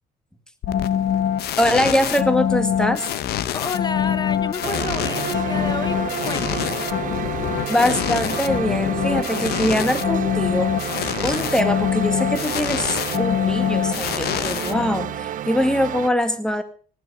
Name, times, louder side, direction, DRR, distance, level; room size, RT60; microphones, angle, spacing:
sound 1, 0.6-15.3, left 10 dB, 70° left, 1.0 m, -24 dB
voice 1, 1.6-3.1 7.7-10.7 11.2-16.6, left 1 dB, 5° left, 9 dB, 2.1 m, -23 dB
voice 2, 3.5-6.7, left 4 dB, 25° left, 16 dB, 1.1 m, -30 dB
sound 2, 4.6-16.1, right 11 dB, 50° right, 0.6 m, -30 dB
18.5 x 10.0 x 6.5 m, 0.43 s
cardioid pair, 110°, 17 cm